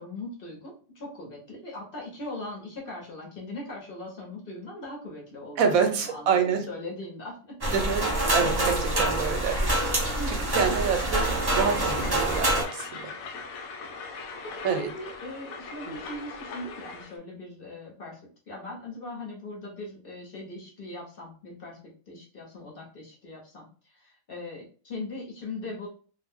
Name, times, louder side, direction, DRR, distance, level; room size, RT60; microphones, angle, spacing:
voice 1, 0.0-7.6 9.2-9.5 10.1-10.7 14.4-18.2 18.5-21.8 22.1-23.6 23.9-25.9, left 2 dB, 45° left, -2 dB, 1.0 m, -40 dB
voice 2, 5.6-6.7 7.7-9.8 10.3-13.0 14.6-14.9 15.9-16.0, right 6 dB, 80° right, 6 dB, 1.0 m, -27 dB
sound 1, 7.6-12.6, right 1 dB, 25° right, 0.6 m, -26 dB
Train, 11.1-17.2, left 4 dB, 80° left, 1.0 m, -41 dB
2.5 x 2.2 x 3.4 m, 0.40 s
omnidirectional pair, 1.4 m